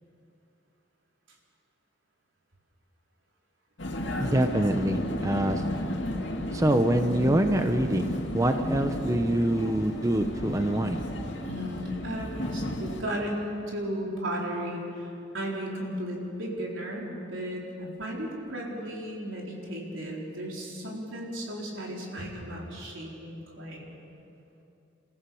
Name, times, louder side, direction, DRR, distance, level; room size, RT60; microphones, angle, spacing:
Vehicle, 3.8-13.0, left 1 dB, 70° left, 2.3 m, -33 dB
voice 1, 4.2-5.6 6.5-11.0, right 1 dB, 15° right, 6 dB, 0.8 m, -25 dB
voice 2, 11.4-23.9, equal, 90° right, -2 dB, 4.3 m, -35 dB
28.5 x 15.0 x 7.1 m, 2.8 s
head